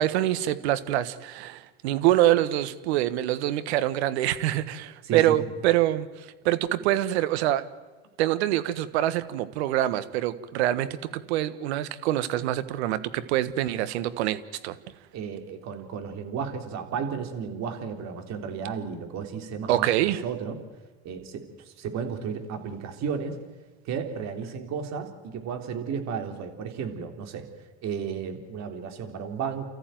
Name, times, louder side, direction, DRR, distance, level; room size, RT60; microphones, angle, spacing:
voice 1, 0.0-7.6 8.2-14.8 19.7-20.2, right 13 dB, 80° right, 13 dB, 1.5 m, -25 dB
voice 2, 5.0-5.4 15.1-19.9 20.2-20.6 21.0-23.4 23.9-27.5 27.8-29.7, right 6 dB, 55° right, 5 dB, 3.7 m, -33 dB
29.5 x 14.5 x 9.3 m, 1.3 s
hypercardioid pair, 85°, 32 cm